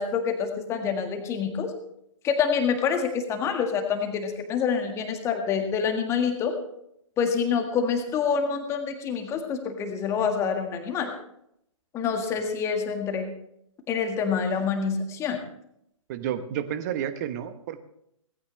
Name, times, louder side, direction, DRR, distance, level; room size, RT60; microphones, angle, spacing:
voice 1, 0.0-1.7 2.2-6.6 7.2-11.1 11.9-13.3 13.9-15.4, left 6 dB, 15° left, 5 dB, 1.8 m, -27 dB
voice 2, 16.1-17.8, right 10 dB, 30° right, 12 dB, 1.1 m, -31 dB
17.5 x 15.5 x 3.3 m, 0.75 s
figure-of-eight pair, 125°, 17 cm